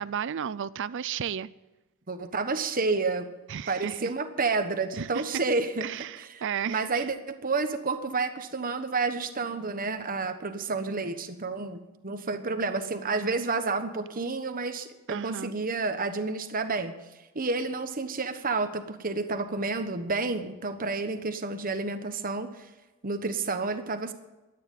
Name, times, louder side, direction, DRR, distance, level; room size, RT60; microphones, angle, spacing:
voice 1, 0.0-1.5 3.5-4.1 5.0-5.2 5.8-7.0 15.1-15.5, right 8 dB, 55° right, 0.4 m, -33 dB
voice 2, 2.1-3.3 3.7-5.8 6.2-6.4 6.7-16.9 17.3-22.7 23.0-24.1, right 3 dB, 40° right, 1.2 m, -30 dB
13.5 x 9.8 x 9.0 m
head